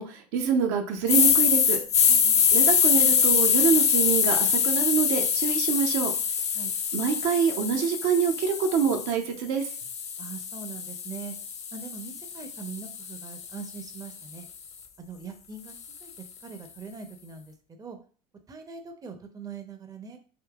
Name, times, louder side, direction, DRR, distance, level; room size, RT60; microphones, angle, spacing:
voice 1, 0.0-1.8 2.5-6.1 6.9-9.7, right 7 dB, 65° right, 4 dB, 0.6 m, -26 dB
sound 1, 1.1-9.1 9.6-13.8, left 7 dB, 35° left, 0.5 m, -24 dB
voice 2, 2.1-2.6 6.5-6.7 10.2-11.3 11.7-14.5 15.0-15.7 16.0-16.1 16.4-18.0 18.5-20.2, right 5 dB, 20° right, 5 dB, 0.5 m, -42 dB
3.6 x 2.7 x 2.3 m, 0.40 s
hypercardioid pair, 75°, 20 cm